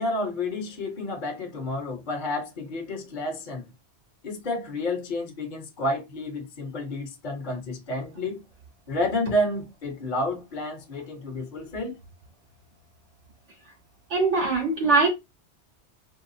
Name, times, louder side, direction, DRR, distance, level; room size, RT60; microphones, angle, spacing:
voice 1, 0.0-3.7 4.2-8.4 8.9-12.0, left 1 dB, 45° left, 1.0 m, -30 dB
voice 2, 14.1-15.1, right 3 dB, 90° right, 2.7 m, -21 dB
4.6 x 2.3 x 2.6 m
omnidirectional pair, 1.2 m